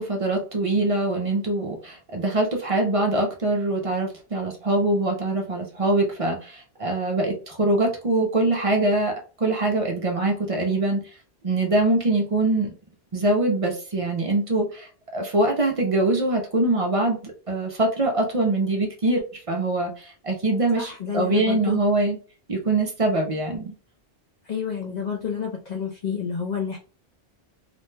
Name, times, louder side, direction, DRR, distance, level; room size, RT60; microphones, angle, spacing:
voice 1, 0.0-11.0 11.4-12.7 13.1-22.2 22.5-23.7, right 2 dB, 45° right, 1 dB, 0.5 m, -23 dB
voice 2, 20.7-21.8 24.5-26.8, left 6 dB, 55° left, 1 dB, 0.5 m, -29 dB
2.5 x 2.1 x 3.1 m, 0.38 s
omnidirectional pair, 1.1 m